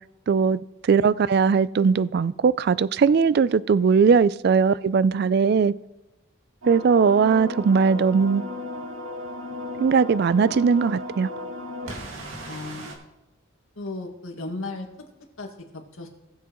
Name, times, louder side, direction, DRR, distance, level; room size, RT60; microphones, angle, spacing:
voice 1, 0.3-5.7 6.7-8.4 9.8-11.3, right 5 dB, 50° right, 0.3 m, -19 dB
sound 1, 6.6-12.9, left 1 dB, 80° right, 2.2 m, -35 dB
voice 2, 12.5-12.9 13.8-14.9 15.4-16.1, left 2 dB, 75° left, 2.0 m, -35 dB
19.0 x 7.2 x 3.1 m
head